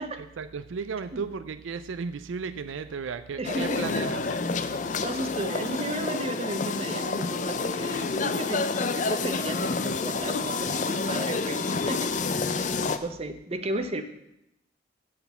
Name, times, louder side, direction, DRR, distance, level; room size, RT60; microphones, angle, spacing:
voice 1, 0.2-4.5, right 5 dB, 80° right, 13 dB, 0.4 m, -35 dB
sound 1, 3.4-13.0, left 4 dB, 40° left, 0.4 m, -29 dB
voice 2, 3.4-4.0 5.0-12.1 12.4-12.6 13.0-14.0, right 1 dB, 30° right, 7 dB, 0.7 m, -34 dB
7.9 x 6.2 x 6.9 m, 0.83 s
head